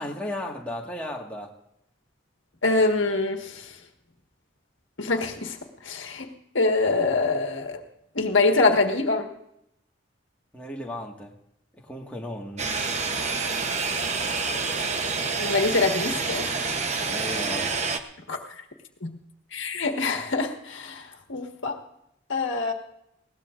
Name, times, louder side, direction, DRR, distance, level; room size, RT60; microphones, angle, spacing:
voice 1, 0.0-1.5 10.5-11.3 11.7-12.9 17.1-17.7, left 1 dB, 5° left, -2 dB, 1.7 m, -35 dB
voice 2, 2.6-3.7 5.0-5.6 5.8-6.3 6.5-7.8 8.1-9.3 15.4-16.5 18.3-18.4 19.0-19.2 19.5-21.8 22.3-22.7, left 3 dB, 90° left, 3 dB, 1.6 m, -24 dB
sound 1, 12.6-18.0, right 4 dB, 35° right, 0.9 m, -28 dB
20.5 x 17.5 x 2.6 m, 0.78 s
head